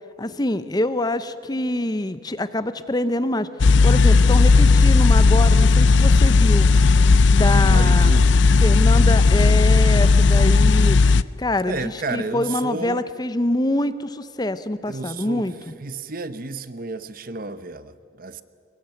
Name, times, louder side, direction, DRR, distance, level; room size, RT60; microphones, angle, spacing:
voice 1, 0.2-6.7 7.3-8.2 8.6-11.0 11.4-15.6, left 1 dB, 20° left, 13 dB, 0.6 m, -25 dB
sound 1, 3.6-11.2, left 4 dB, 65° left, 0.5 m, -15 dB
voice 2, 7.7-8.4 11.7-13.0 14.9-18.4, right 3 dB, 45° right, 13 dB, 0.8 m, -32 dB
24.0 x 22.0 x 9.1 m, 2.4 s
head